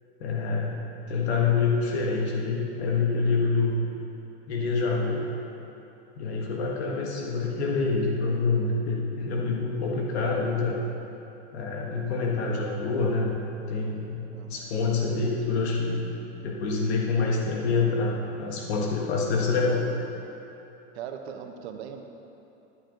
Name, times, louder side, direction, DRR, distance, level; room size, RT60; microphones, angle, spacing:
voice 1, 0.2-0.8 1.1-3.8 4.5-5.3 6.2-10.8 11.5-13.4 13.7-14.2 14.5-16.0 16.4-19.8, left 4 dB, 80° left, -1 dB, 1.6 m, -26 dB
voice 2, 14.2-14.7 20.9-22.0, right 8 dB, 75° right, 5 dB, 1.2 m, -40 dB
11.5 x 11.0 x 3.9 m, 2.9 s
supercardioid pair, 120°, 32 cm